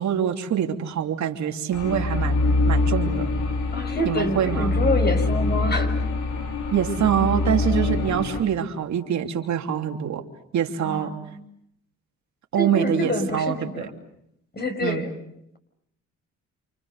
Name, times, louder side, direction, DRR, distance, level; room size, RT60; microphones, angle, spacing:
voice 1, 0.0-2.4 2.7-3.3 4.0-4.7 6.7-10.3 10.5-11.1 12.5-13.9 14.8-15.0, right 9 dB, 65° right, 4 dB, 3.2 m, -25 dB
sound 1, 1.7-8.4, left 2 dB, 70° left, 4.6 m, -24 dB
voice 2, 3.7-6.0 10.8-11.4 12.6-13.9 14.5-15.1, left 1 dB, 35° left, 6 dB, 5.8 m, -27 dB
28.5 x 28.5 x 6.8 m, 0.76 s
cardioid pair, 90°, 30 cm